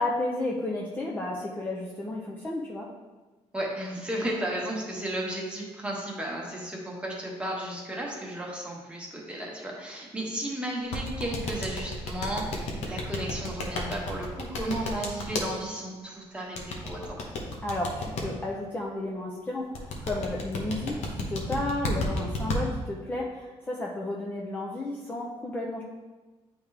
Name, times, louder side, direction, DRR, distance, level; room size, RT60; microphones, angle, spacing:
voice 1, 0.0-2.9 17.6-25.8, left 2 dB, 15° left, -3 dB, 0.6 m, -32 dB
voice 2, 3.5-17.2, right 1 dB, 10° right, -3 dB, 1.3 m, -34 dB
sound 1, 10.9-15.5 16.6-18.2 19.7-22.6, left 2 dB, 85° left, 1.1 m, -31 dB
8.9 x 3.6 x 3.3 m, 1.2 s
cardioid pair, 125°, 11 cm